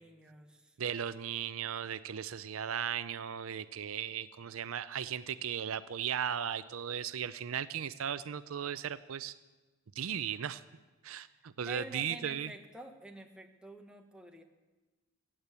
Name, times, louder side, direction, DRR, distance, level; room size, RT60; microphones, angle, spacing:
voice 1, 0.0-0.8 11.3-14.4, right 1 dB, 5° right, 3 dB, 1.2 m, -49 dB
voice 2, 0.8-9.4 10.0-10.6 11.0-12.5, right 8 dB, 75° right, 14 dB, 0.5 m, -36 dB
15.5 x 8.9 x 8.2 m, 1.2 s
head